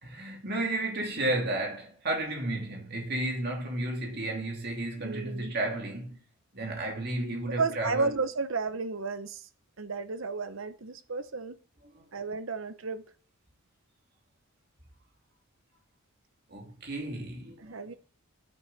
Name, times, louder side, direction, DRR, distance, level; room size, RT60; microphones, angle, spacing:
voice 1, 0.0-6.2 6.5-8.1 16.5-18.0, right 1 dB, 45° right, 2.6 m, -33 dB
voice 2, 5.0-5.5 7.6-9.5 9.8-11.6 12.1-13.0 17.6-17.9, right 4 dB, 65° right, 0.9 m, -32 dB
10.5 x 9.3 x 4.0 m
head